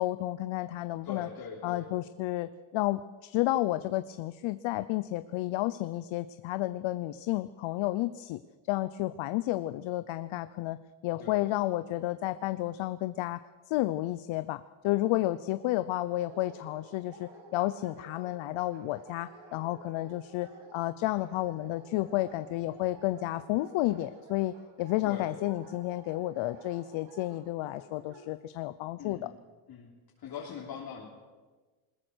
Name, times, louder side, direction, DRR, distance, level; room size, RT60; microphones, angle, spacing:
voice 1, 0.0-1.3 1.6-8.4 8.7-10.8 11.0-13.4 13.7-24.5 24.8-29.3, left 16 dB, 75° left, 12 dB, 0.8 m, -31 dB
voice 2, 1.0-1.9 11.1-11.4 25.0-25.4 29.0-29.3 29.7-29.9 30.2-31.1, left 7 dB, 50° left, -3 dB, 3.4 m, -41 dB
Dog, 16.1-28.3, right 3 dB, 70° right, 5.8 m, -53 dB
21.5 x 20.5 x 6.3 m, 1.3 s
cardioid pair, 145°, 48 cm